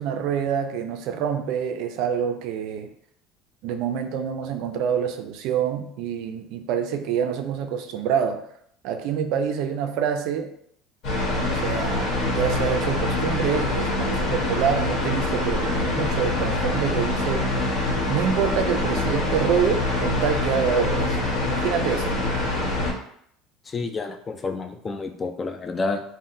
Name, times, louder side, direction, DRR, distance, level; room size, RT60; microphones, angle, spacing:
voice 1, 0.0-2.9 3.6-8.4 8.8-10.5 11.3-17.7 18.1-21.2 21.4-22.2, right 8 dB, 70° right, 7 dB, 0.3 m, -26 dB
sound 1, 11.0-22.9, left 2 dB, 65° left, 1.1 m, -25 dB
voice 2, 23.7-26.0, left 3 dB, 25° left, 6 dB, 0.3 m, -29 dB
3.5 x 2.0 x 2.6 m, 0.69 s
supercardioid pair, 110°, 0 cm